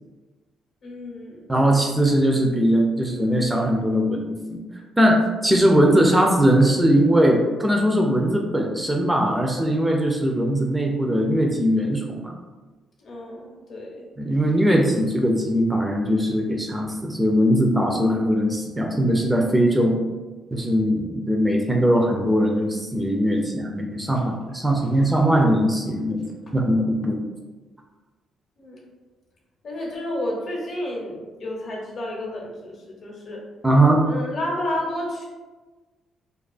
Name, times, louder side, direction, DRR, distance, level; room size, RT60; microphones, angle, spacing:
voice 1, 0.8-1.5 13.0-14.1 24.1-24.3 24.8-25.3 28.6-28.9 29.6-33.4 34.0-35.3, left 1 dB, 50° left, -3 dB, 0.7 m, -31 dB
voice 2, 1.5-4.6 5.0-12.3 14.2-20.0 20.5-26.2 26.5-27.2 33.6-34.0, equal, 10° right, 0 dB, 0.3 m, -20 dB
2.4 x 2.3 x 2.4 m, 1.3 s
cardioid pair, 90°, 0 cm